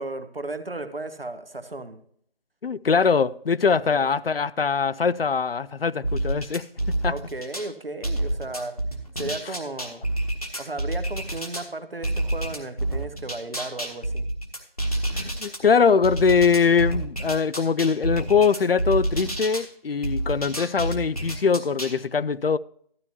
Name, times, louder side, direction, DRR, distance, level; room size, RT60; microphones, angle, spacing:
voice 1, 0.0-2.0 3.7-4.1 7.0-8.8 9.2-10.0 10.6-14.3, right 2 dB, 70° right, 1.1 m, -35 dB
voice 2, 2.6-7.1 15.1-22.6, left 5 dB, 75° left, 0.5 m, -22 dB
sound 1, 6.0-7.7 8.0-11.7 12.0-15.6 16.0-19.7 20.0-22.0, right 1 dB, 40° left, 1.1 m, -28 dB
12.5 x 9.4 x 2.8 m
figure-of-eight pair, 180°, 30 cm